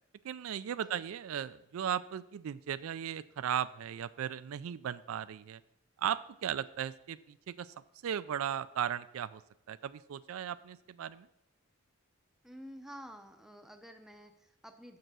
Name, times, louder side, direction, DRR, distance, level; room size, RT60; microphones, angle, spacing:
voice 1, 0.2-5.6 6.0-7.7 8.0-9.4 9.7-11.3, right 9 dB, 80° right, 15 dB, 0.3 m, -36 dB
voice 2, 0.8-1.1 12.4-15.0, equal, ahead, 6 dB, 0.5 m, -50 dB
6.6 x 6.6 x 6.1 m, 0.86 s
head